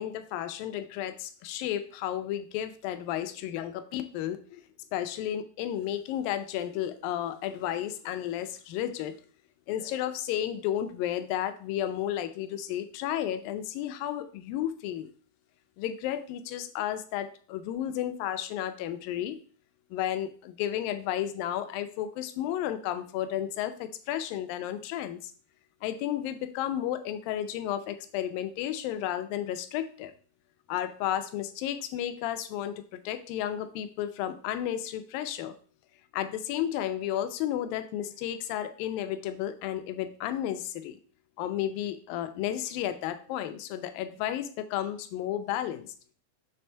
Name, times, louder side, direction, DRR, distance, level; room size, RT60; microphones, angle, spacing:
voice 1, 0.0-4.6 4.9-9.1 9.7-15.1 15.8-19.4 19.9-25.3 25.8-30.1 30.7-35.5 36.1-41.0 41.4-45.9, left 11 dB, 80° left, 10 dB, 2.3 m, -32 dB
6.5 x 3.4 x 4.4 m, 0.43 s
omnidirectional pair, 4.0 m